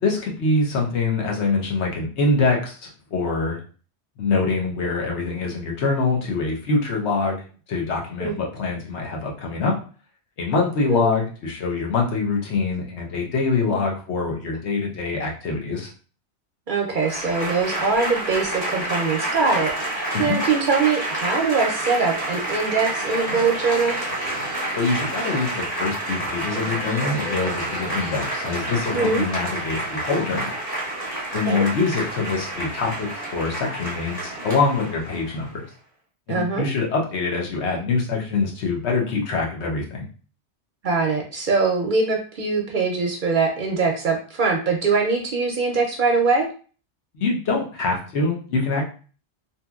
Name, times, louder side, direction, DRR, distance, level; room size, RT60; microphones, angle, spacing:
voice 1, 0.0-3.6 4.2-9.7 10.4-15.9 20.1-20.4 24.7-30.5 31.3-35.7 36.3-40.1 47.1-48.8, left 3 dB, 75° left, 0 dB, 1.0 m, -24 dB
voice 2, 16.7-19.7 20.2-24.0 28.9-29.3 31.5-31.7 36.3-36.7 40.8-46.5, right 4 dB, 55° right, 1 dB, 0.6 m, -22 dB
Applause / Crowd, 16.9-35.5, right 1 dB, 20° left, 1.3 m, -29 dB
2.8 x 2.6 x 2.3 m, 0.38 s
omnidirectional pair, 1.1 m